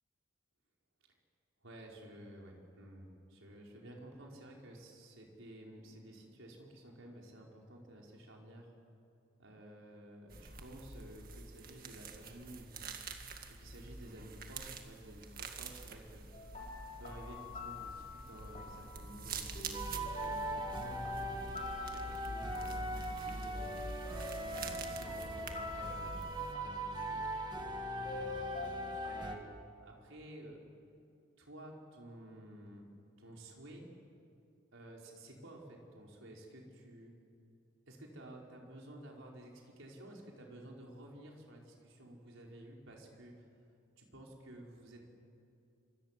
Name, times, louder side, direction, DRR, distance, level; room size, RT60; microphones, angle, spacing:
voice 1, 1.6-8.7 9.4-13.0 13.5-16.3 17.0-21.4 21.8-23.8 24.3-27.2 27.9-29.6 29.8-30.7 31.4-32.8 33.2-33.9 34.7-37.1 37.9-43.4 44.0-45.1, right 1 dB, 70° right, -1 dB, 4.9 m, -53 dB
sound 1, 10.3-26.5, right 3 dB, 45° right, 2.0 m, -47 dB
sound 2, 16.3-29.4, left 4 dB, 35° left, 4.3 m, -48 dB
sound 3, 19.7-29.3, right 1 dB, 20° right, 1.8 m, -40 dB
26.0 x 25.0 x 7.6 m, 2.5 s
head